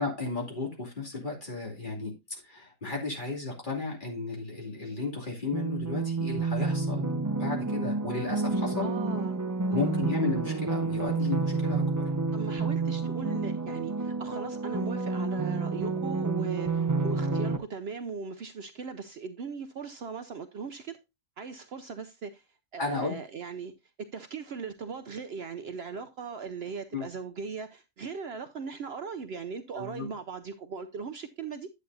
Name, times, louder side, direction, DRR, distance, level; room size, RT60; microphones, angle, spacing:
voice 1, 0.0-8.9 9.7-12.1 22.8-23.1 26.9-27.1 29.7-30.1, left 3 dB, 35° left, 2.7 m, -34 dB
sound 1, 5.5-17.6, right 3 dB, 30° right, 0.3 m, -29 dB
voice 2, 8.8-9.4 9.7-9.9 12.3-21.0 21.4-22.5 22.7-23.7 24.0-31.7, right 5 dB, 60° right, 0.8 m, -39 dB
10.5 x 8.0 x 2.6 m
omnidirectional pair, 1.4 m